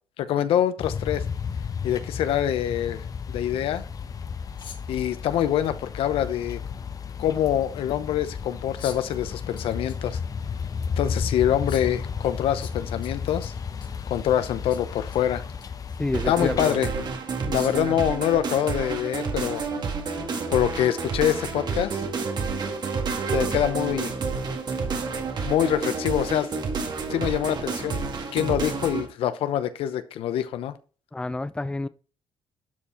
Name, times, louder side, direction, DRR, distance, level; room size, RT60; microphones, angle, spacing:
voice 1, 0.2-1.2 1.8-3.8 4.9-6.6 7.2-10.2 11.0-13.5 14.1-15.4 16.3-17.1 17.5-19.6 20.5-22.0 23.3-24.1 25.4-26.5 27.1-30.7, left 11 dB, 80° left, 0.8 m, -25 dB
sound 1, 0.8-16.7, left 6 dB, 40° left, 0.8 m, -33 dB
sound 2, 4.6-5.0 6.5-6.6 8.8-9.1 9.6-10.0 10.4-10.5 11.7-12.0 12.6-14.1 14.7-15.2 15.5-15.7 16.4-16.5 17.6-17.9, left 7 dB, 60° left, 1.6 m, -44 dB
voice 2, 16.0-16.8 31.1-31.9, left 2 dB, 10° left, 0.5 m, -28 dB
sound 3, 16.1-29.1, right 4 dB, 50° right, 2.0 m, -29 dB
12.0 x 4.5 x 4.4 m
cardioid pair, 90°, 9 cm